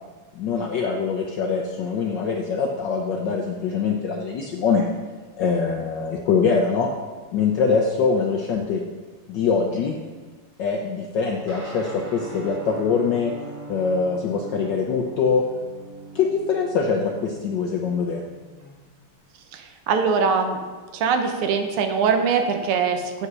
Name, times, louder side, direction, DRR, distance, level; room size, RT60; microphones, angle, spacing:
voice 1, 0.3-4.9 5.4-6.9 7.3-8.8 9.3-9.9 10.6-13.3 13.7-15.4 16.1-18.2, left 5 dB, 65° left, 1 dB, 1.2 m, -23 dB
Guitar, 11.5-19.2, right 3 dB, 45° right, 2.4 m, -41 dB
voice 2, 19.5-20.6 20.9-23.3, right 5 dB, 85° right, 5 dB, 1.8 m, -22 dB
8.4 x 5.5 x 6.1 m, 1.4 s
omnidirectional pair, 2.4 m